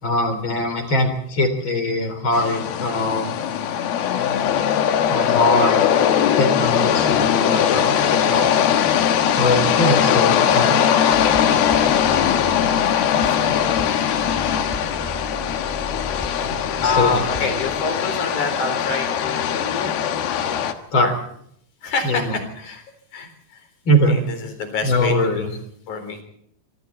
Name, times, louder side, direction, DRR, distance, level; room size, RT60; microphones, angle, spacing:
voice 1, 0.0-3.4 5.1-5.9 6.4-8.5 9.4-10.8 16.8-17.2 20.9-21.1 22.0-22.3 23.9-24.2 24.8-25.5, left 1 dB, 35° left, 8 dB, 3.9 m, -21 dB
sound 1, 2.3-20.7, left 9 dB, 90° left, 3.3 m, -20 dB
sound 2, 11.1-18.3, left 1 dB, 10° left, 1.4 m, -35 dB
voice 2, 13.3-14.0 16.3-16.5 16.8-20.2 20.9-21.1 21.8-22.8 23.1-23.7 24.1-25.5 25.9-26.2, left 4 dB, 55° left, 7 dB, 5.4 m, -27 dB
25.0 x 24.5 x 4.3 m, 0.68 s
omnidirectional pair, 4.2 m